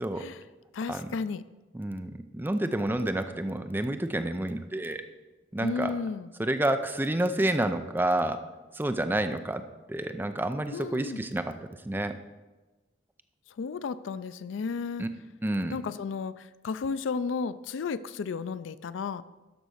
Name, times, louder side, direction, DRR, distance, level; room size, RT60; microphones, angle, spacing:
voice 1, 0.7-1.4 5.6-6.3 10.7-11.2 13.6-15.1 15.7-19.2, left 5 dB, 85° left, 16 dB, 0.4 m, -33 dB
voice 2, 1.7-5.0 5.5-6.0 6.4-8.4 8.7-9.6 9.9-11.5 11.8-12.1 15.0-15.1 15.4-15.8, right 1 dB, 10° right, 8 dB, 0.4 m, -29 dB
12.0 x 4.1 x 6.3 m, 1.2 s
head